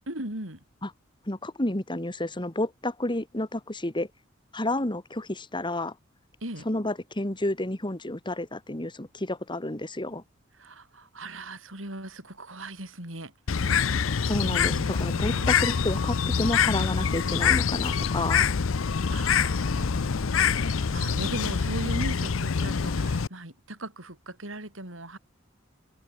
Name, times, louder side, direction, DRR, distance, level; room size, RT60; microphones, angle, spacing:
voice 1, 0.1-0.6 6.4-6.7 10.6-13.8 14.4-15.7 19.1-25.2, right 1 dB, 80° right, 7.9 m, -39 dB
voice 2, 1.3-4.1 4.5-5.9 6.7-10.2 14.3-18.5, left 1 dB, 25° left, 2.2 m, -30 dB
Bird, 13.5-23.3, left 6 dB, 85° left, 0.6 m, -25 dB
head